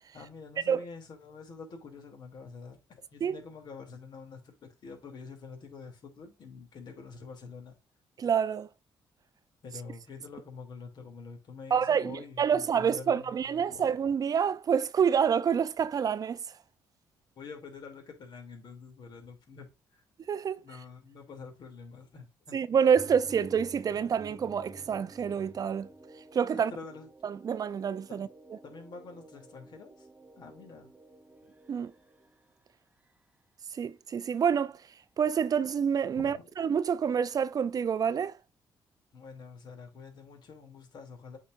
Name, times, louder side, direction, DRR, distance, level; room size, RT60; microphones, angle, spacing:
voice 1, 0.1-4.5 4.8-7.7 9.6-13.8 17.4-20.0 20.6-22.6 26.5-27.1 28.1-28.3 28.6-30.1 30.4-30.9 36.1-36.5 39.1-41.4, left 4 dB, 60° left, 2.8 m, -47 dB
voice 2, 8.2-8.7 11.7-16.4 20.3-20.6 22.5-25.9 26.3-26.7 27.2-28.3 31.7-31.9 33.7-34.8 35.2-38.3, right 7 dB, 50° right, 0.5 m, -27 dB
sound 1, 22.9-32.3, right 2 dB, 20° right, 0.9 m, -51 dB
8.2 x 4.9 x 2.6 m
cardioid pair, 80°, 8 cm